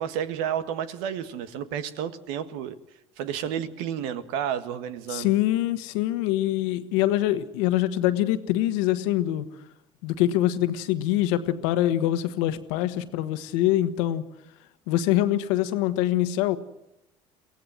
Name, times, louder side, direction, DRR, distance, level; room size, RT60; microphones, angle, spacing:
voice 1, 0.0-2.8 3.2-5.3, right 9 dB, 80° right, 11 dB, 1.5 m, -31 dB
voice 2, 5.1-9.4 10.0-14.2 14.9-16.6, left 13 dB, 80° left, 10 dB, 1.4 m, -24 dB
23.5 x 17.0 x 7.8 m, 0.84 s
hypercardioid pair, 75°, 16 cm